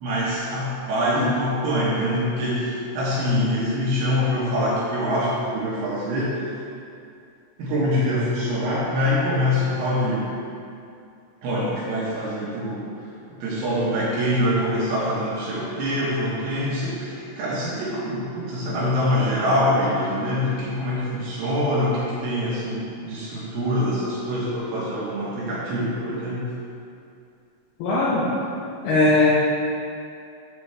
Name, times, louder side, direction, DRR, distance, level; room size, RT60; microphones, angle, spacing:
voice 1, 0.0-6.4 7.6-10.3 11.4-12.9 13.4-26.4, equal, 70° right, -7 dB, 2.6 m, -24 dB
voice 2, 27.8-28.3 28.8-29.3, left 2 dB, 80° left, -8 dB, 2.2 m, -19 dB
8.1 x 6.9 x 3.3 m, 2.5 s
omnidirectional pair, 5.7 m